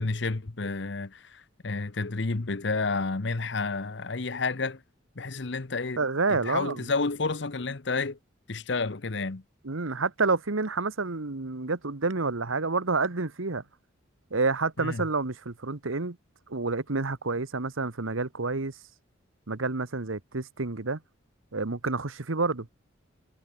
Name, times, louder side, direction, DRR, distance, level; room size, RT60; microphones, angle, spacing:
voice 1, 0.0-4.8 5.2-8.2 8.5-9.4 14.8-15.0, left 3 dB, 60° left, 0.9 m, -30 dB
voice 2, 6.0-6.9 9.6-13.6 14.3-16.2 16.5-18.8 19.5-21.0 21.5-22.7, right 3 dB, 80° right, 1.3 m, -29 dB
head